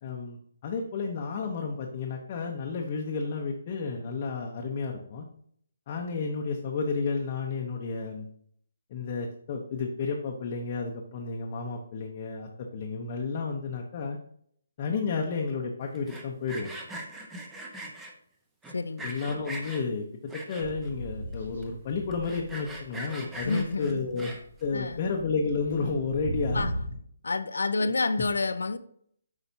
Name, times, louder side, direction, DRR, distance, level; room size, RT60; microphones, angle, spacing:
voice 1, 0.0-5.3 5.9-8.3 8.9-14.2 14.8-16.7 19.0-20.0 20.3-24.3 24.6-26.7 27.8-27.9, left 4 dB, 35° left, 0.8 m, -32 dB
Sawing, 15.9-18.1 18.6-19.8 20.3-20.9 21.3-21.4 21.6-21.7 22.1-24.6, right 1 dB, 10° right, 0.9 m, -41 dB
voice 2, 18.7-19.1 23.4-24.0 24.7-25.0 26.5-26.7 27.2-28.8, left 3 dB, 80° left, 0.5 m, -29 dB
sound 1, 20.6-22.9 23.2-26.9, equal, 75° right, 2.4 m, -37 dB
8.0 x 4.9 x 2.7 m
hypercardioid pair, 150°, 0 cm